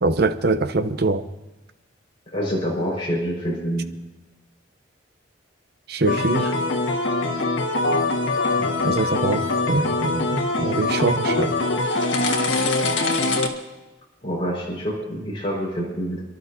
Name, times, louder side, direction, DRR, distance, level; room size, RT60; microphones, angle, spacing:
voice 1, 0.0-1.2 5.9-6.5 8.8-11.5, right 3 dB, 60° right, 10 dB, 0.8 m, -23 dB
voice 2, 2.3-3.9 8.5-8.7 14.2-16.2, equal, 30° left, -3 dB, 5.1 m, -27 dB
sound 1, 6.1-13.5, left 2 dB, 80° left, 1.6 m, -23 dB
28.5 x 12.5 x 2.8 m, 1.1 s
head